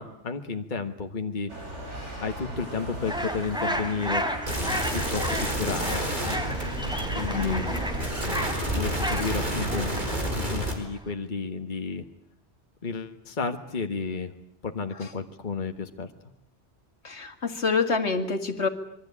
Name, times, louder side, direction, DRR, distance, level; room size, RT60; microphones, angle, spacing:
voice 1, 0.0-1.5 2.2-4.2 4.9-6.4 7.1-7.8 8.7-9.9 10.3-12.0 12.8-14.3 14.6-16.1, left 4 dB, 45° left, 6 dB, 1.6 m, -32 dB
sound 1, 1.5-10.0, right 1 dB, 80° right, 6.2 m, -38 dB
sound 2, 3.1-11.1, equal, 5° right, 3.0 m, -33 dB
sound 3, 4.5-10.7, right 1 dB, 40° right, 5.1 m, -30 dB
voice 2, 7.3-7.7 17.0-18.7, left 4 dB, 75° left, 5 dB, 2.3 m, -27 dB
26.5 x 23.0 x 8.6 m, 0.73 s
omnidirectional pair, 1.2 m